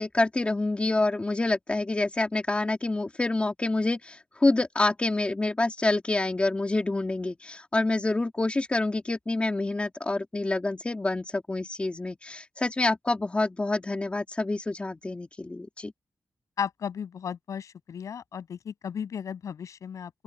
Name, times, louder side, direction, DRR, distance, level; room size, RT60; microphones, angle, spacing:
voice 1, 0.0-15.9, left 2 dB, 20° left, 2.7 m, -27 dB
voice 2, 16.6-20.1, left 7 dB, 85° left, 7.6 m, -35 dB
open air
wide cardioid pair, 115°, 5 cm